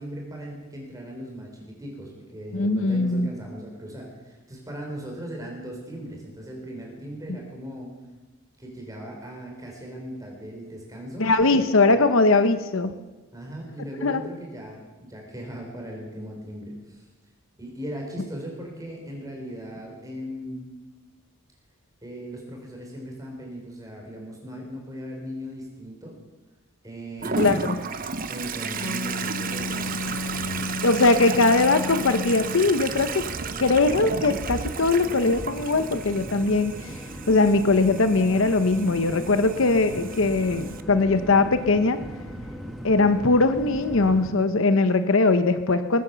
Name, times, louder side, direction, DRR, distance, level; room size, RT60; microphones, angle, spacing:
voice 1, 0.0-7.9 8.6-11.3 11.6-11.7 13.3-17.0 17.6-20.7 22.0-26.2 26.8-30.6, equal, 15° right, 0 dB, 4.1 m, -38 dB
voice 2, 2.5-3.3 11.2-12.9 14.0-14.2 27.4-27.8 30.8-33.3 33.6-36.9 37.3-42.0 42.8-46.0, left 3 dB, 65° left, 10 dB, 0.8 m, -21 dB
Toilet flush, 27.2-40.8, right 5 dB, 40° right, 0.8 m, -33 dB
Wind instrument woodwind instrument, 28.5-32.7, left 2 dB, 85° left, 1.1 m, -34 dB
sound 1, 29.5-44.3, equal, ahead, 1.6 m, -39 dB
21.0 x 9.7 x 6.9 m, 1.2 s
head